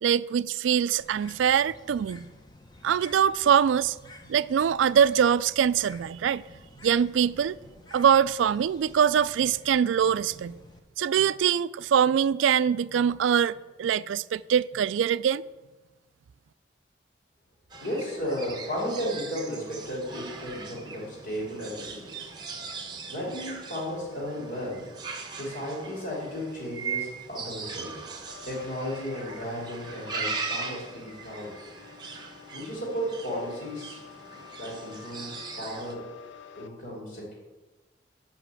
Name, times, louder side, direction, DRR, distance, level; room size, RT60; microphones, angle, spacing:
voice 1, 0.0-2.3 2.8-4.0 4.3-6.4 6.8-7.5 7.9-10.5 11.0-13.5 13.8-15.4, right 8 dB, 85° right, 0.3 m, -23 dB
Bird, 1.0-10.8, left 2 dB, 20° left, 0.7 m, -51 dB
sound 1, 17.7-35.9, right 4 dB, 20° right, 1.0 m, -39 dB
voice 2, 17.8-22.1 23.1-24.8 25.3-28.0 28.4-31.5 32.5-34.0 34.5-36.0 36.5-37.3, equal, 55° left, 2.9 m, -34 dB
sound 2, 28.3-36.7, left 8 dB, 80° left, 0.7 m, -49 dB
8.2 x 5.9 x 7.6 m
head